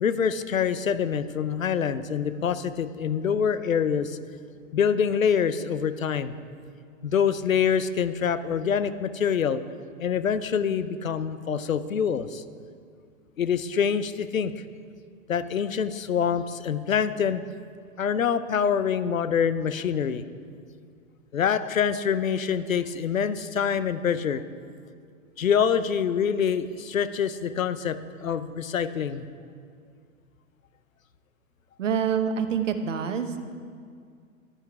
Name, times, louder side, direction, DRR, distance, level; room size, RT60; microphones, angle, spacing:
voice 1, 0.0-4.2 4.7-6.3 7.0-9.6 10.0-12.4 13.4-14.5 15.3-17.4 18.0-20.2 21.3-24.4 25.4-29.2, left 7 dB, 75° left, 13 dB, 0.7 m, -25 dB
voice 2, 31.8-33.4, right 7 dB, 65° right, 9 dB, 0.9 m, -26 dB
11.5 x 9.1 x 4.7 m, 2.2 s
figure-of-eight pair, 100°, 41 cm